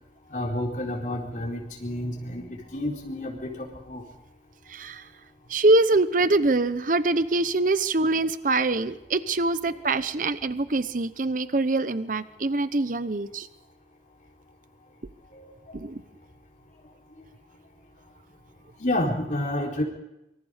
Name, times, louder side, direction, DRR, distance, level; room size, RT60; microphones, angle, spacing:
voice 1, 0.3-4.0 9.7-9.8 15.3-15.5 18.8-19.8, left 1 dB, 45° left, -1 dB, 4.3 m, -30 dB
voice 2, 4.7-5.0 5.5-13.5 15.7-16.0, right 2 dB, 45° right, 13 dB, 0.8 m, -24 dB
26.5 x 25.0 x 5.0 m, 0.88 s
head